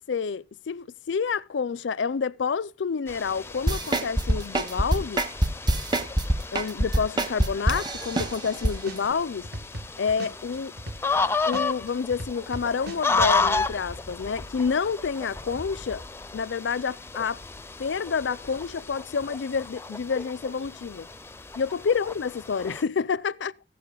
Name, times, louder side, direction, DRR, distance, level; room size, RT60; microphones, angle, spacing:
voice 1, 0.0-5.3 6.5-9.5 10.0-10.7 11.5-16.0 16.3-17.4 17.8-21.1 21.5-23.5, left 5 dB, 70° left, 0.5 m, -28 dB
sound 1, 3.1-22.8, left 4 dB, 15° left, 0.5 m, -33 dB
sound 2, 3.7-8.7 9.1-9.2, right 1 dB, 25° right, 1.0 m, -24 dB
sound 3, 8.2-8.6 8.9-11.2 11.5-13.3, equal, 60° right, 1.6 m, -37 dB
15.5 x 11.5 x 2.3 m
head